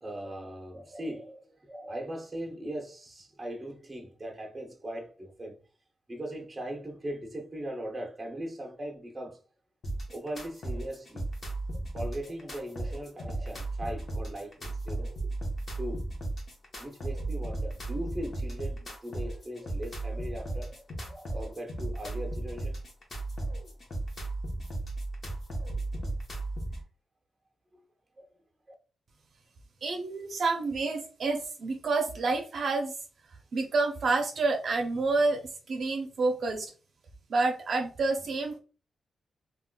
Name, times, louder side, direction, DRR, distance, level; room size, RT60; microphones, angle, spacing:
voice 1, 0.0-5.6 6.1-9.4 10.1-11.3 11.9-15.3 15.8-16.1 16.8-22.8 28.2-28.3, right 1 dB, 20° right, 0.7 m, -39 dB
sound 1, 9.8-26.8, right 2 dB, 40° left, 0.9 m, -35 dB
voice 2, 29.8-32.9 33.5-36.7 37.3-38.6, right 3 dB, 55° right, 0.5 m, -28 dB
3.5 x 2.3 x 2.2 m
wide cardioid pair, 125°, 0 cm